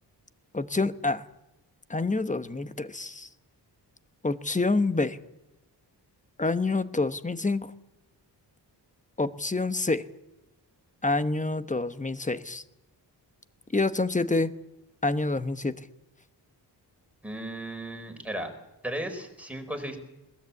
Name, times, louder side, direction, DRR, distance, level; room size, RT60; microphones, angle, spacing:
voice 1, 0.5-1.2 1.9-3.3 4.2-5.2 6.4-7.7 9.2-10.0 11.0-12.6 13.7-14.5 15.0-15.7, left 3 dB, 20° left, 12 dB, 1.1 m, -27 dB
voice 2, 17.2-18.5 18.8-20.0, right 1 dB, 5° right, 4 dB, 4.7 m, -35 dB
21.5 x 19.0 x 8.5 m, 0.92 s
wide cardioid pair, 110°, 42 cm